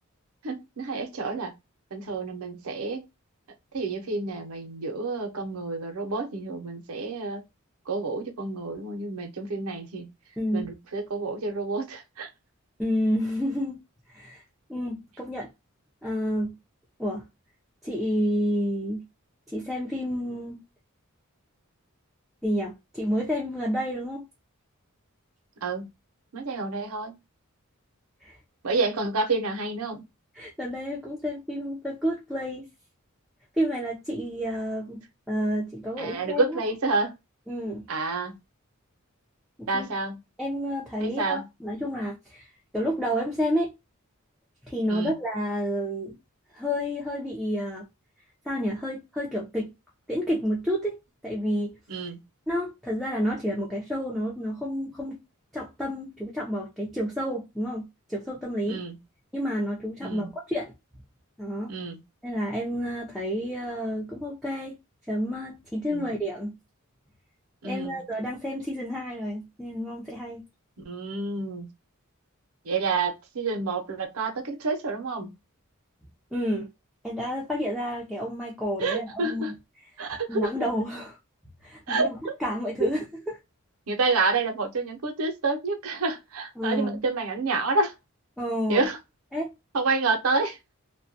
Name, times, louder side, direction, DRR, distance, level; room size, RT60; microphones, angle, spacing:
voice 1, 0.4-1.5 1.9-3.1 3.7-7.4 7.9-10.1 10.5-12.3 25.6-25.9 26.3-27.2 28.6-30.0 36.0-37.1 37.9-38.4 39.7-40.2 41.0-41.5 44.9-45.2 51.9-52.2 58.7-59.0 60.0-60.3 61.7-62.0 65.9-66.0 67.6-68.0 70.8-71.7 72.6-75.4 78.8-79.5 80.0-80.5 81.9-82.1 82.8-82.9 83.9-87.9 88.7-89.0 89.7-90.6, right 3 dB, 85° right, 0.7 m, -29 dB
voice 2, 10.4-10.7 12.8-13.8 14.1-14.4 14.7-15.5 16.0-16.6 17.0-17.2 17.8-19.1 19.5-20.6 22.4-24.3 28.2-28.3 30.4-32.7 33.6-36.5 37.5-37.9 39.6-39.9 40.4-42.5 42.7-43.7 44.7-46.2 46.5-47.9 48.5-49.7 50.1-51.8 52.5-55.2 55.5-58.8 59.3-60.7 61.4-61.7 62.2-64.8 65.1-66.6 67.6-70.4 76.3-76.7 77.0-79.4 80.3-81.2 81.6-82.2 82.4-83.0 86.6-87.0 88.4-88.8 89.3-89.5, equal, ahead, 0.5 m, -30 dB
2.2 x 2.1 x 2.6 m
head